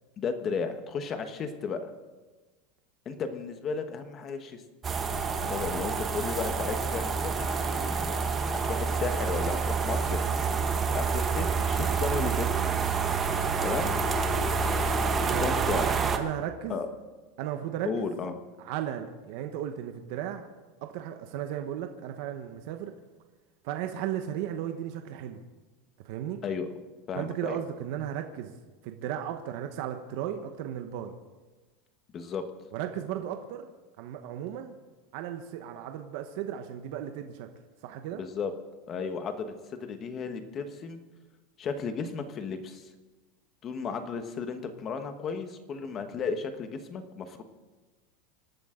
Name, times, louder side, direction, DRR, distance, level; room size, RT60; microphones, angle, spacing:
voice 1, 0.2-1.8 3.0-4.6 5.3-8.3 8.6-10.2 10.9-13.0 13.6-13.9 15.4-15.9 16.7-16.9 17.8-18.3 26.4-26.7 27.1-27.6 32.1-32.4 38.1-38.5 38.9-39.5 39.8-41.0 41.6-42.9 43.6-47.4, left 5 dB, 25° left, 8 dB, 1.2 m, -34 dB
sound 1, 4.8-16.2, right 5 dB, 15° right, 0.9 m, -28 dB
voice 2, 15.2-16.8 17.4-18.1 18.6-20.5 20.8-22.9 23.6-25.4 26.0-26.4 27.1-28.5 28.8-31.1 32.7-33.7 34.0-34.7 35.1-37.5 37.8-38.2, right 10 dB, 50° right, 6 dB, 1.0 m, -35 dB
26.0 x 12.0 x 3.8 m, 1.3 s
supercardioid pair, 175°, 0 cm